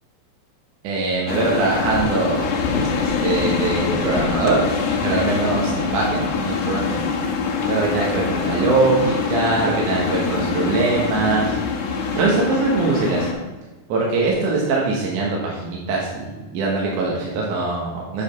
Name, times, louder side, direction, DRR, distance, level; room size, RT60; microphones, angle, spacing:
voice 1, 0.8-2.5 3.0-4.6 5.0-7.0 7.7-11.6 12.2-13.3 13.9-18.2, right 3 dB, 70° right, -3 dB, 2.5 m, -22 dB
sound 1, 1.3-13.3, left 5 dB, 85° left, 2.7 m, -24 dB
8.4 x 5.0 x 5.1 m, 1.2 s
omnidirectional pair, 4.0 m